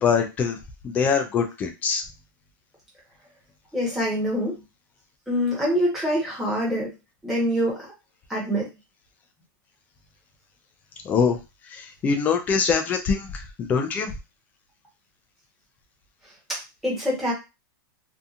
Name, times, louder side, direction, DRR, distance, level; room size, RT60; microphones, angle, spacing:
voice 1, 0.0-0.6 0.8-2.0 11.1-11.4 11.7-14.1, left 6 dB, 15° left, 6 dB, 0.3 m, -23 dB
voice 2, 3.7-4.6 5.3-6.9 7.2-7.8 8.3-8.7 16.8-17.3, equal, ahead, -5 dB, 1.0 m, -24 dB
2.7 x 2.4 x 2.4 m, 0.26 s
supercardioid pair, 160°, 12 cm